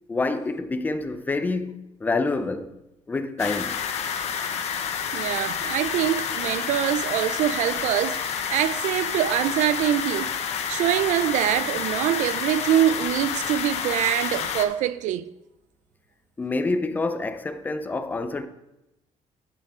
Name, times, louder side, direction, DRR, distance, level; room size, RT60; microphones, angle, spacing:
voice 1, 0.1-2.7 3.1-3.8 16.4-18.5, left 3 dB, 15° left, 0.5 m, -27 dB
sound 1, 3.4-14.7, left 7 dB, 60° left, 0.8 m, -29 dB
voice 2, 5.1-10.3 10.7-15.3, right 12 dB, 80° right, 0.4 m, -24 dB
9.0 x 6.8 x 4.9 m
cardioid pair, 165°, 13 cm